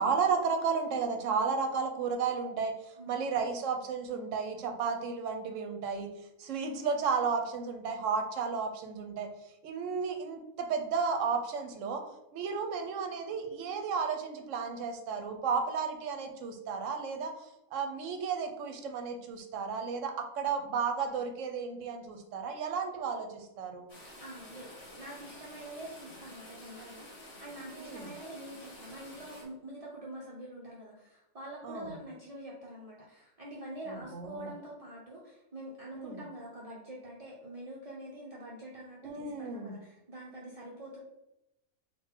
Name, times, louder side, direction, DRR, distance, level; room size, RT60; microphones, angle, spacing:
voice 1, 0.0-6.1 6.4-9.3 9.6-12.0 12.3-23.9 27.7-28.1 31.6-31.9 33.9-34.5 35.9-36.2 39.0-39.7, right 5 dB, 65° right, 5 dB, 0.9 m, -33 dB
sound 1, 23.9-29.4, left 1 dB, 60° left, 1.4 m, -50 dB
voice 2, 24.2-41.0, right 1 dB, 40° right, -5 dB, 0.5 m, -46 dB
3.8 x 2.5 x 4.4 m, 0.88 s
omnidirectional pair, 1.5 m